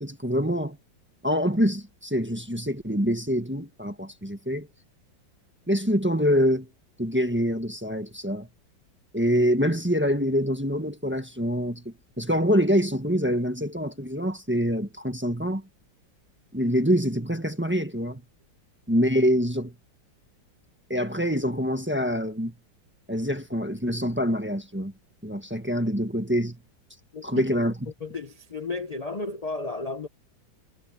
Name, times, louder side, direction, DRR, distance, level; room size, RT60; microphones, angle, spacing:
voice 1, 0.0-0.8 1.2-4.7 5.7-6.7 7.0-8.5 9.1-11.8 12.2-15.6 16.5-18.2 18.9-19.7 20.9-22.5 23.1-24.9 25.2-26.6 27.2-27.8, equal, 5° right, 1.2 m, -25 dB
voice 2, 27.1-27.4 28.0-30.1, left 3 dB, 70° left, 0.3 m, -33 dB
omnidirectional pair, 2.0 m